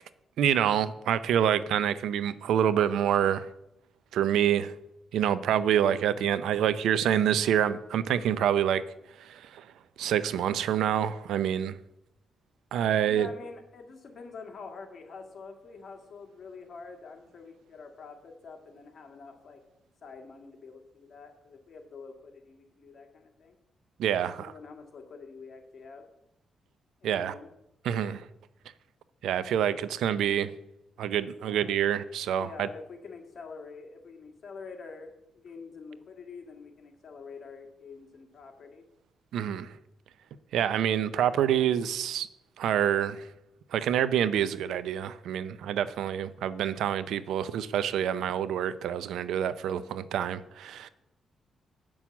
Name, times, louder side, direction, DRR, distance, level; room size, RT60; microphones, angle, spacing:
voice 1, 0.4-3.5 4.1-4.7 5.1-8.8 9.2-9.6 10.0-11.7 12.7-13.3 24.0-24.5 27.0-27.3 27.8-28.3 29.2-30.5 31.0-32.7 39.3-39.7 40.5-42.3 42.6-43.2 43.7-50.9, right 9 dB, 85° right, 0.5 m, -27 dB
voice 2, 13.1-19.6 20.0-23.6 24.4-26.0 27.0-27.5 31.4-31.9 32.3-38.8, left 4 dB, 55° left, 1.9 m, -46 dB
8.8 x 6.2 x 7.1 m
cardioid pair, 95°, 0 cm